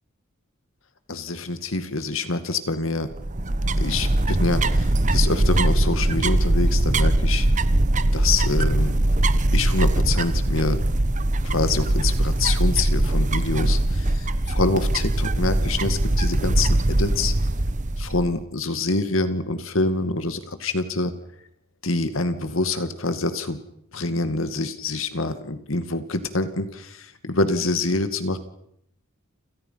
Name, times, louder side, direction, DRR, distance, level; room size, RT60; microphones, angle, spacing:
voice 1, 1.1-3.1 3.8-7.5 8.1-9.0 9.5-10.8 11.4-17.3 18.0-21.1 21.8-23.6 23.9-28.4, left 3 dB, 80° left, 10 dB, 2.2 m, -26 dB
sound 1, 3.1-18.4, right 1 dB, 40° right, 1.1 m, -21 dB
29.5 x 27.5 x 5.8 m, 0.72 s
head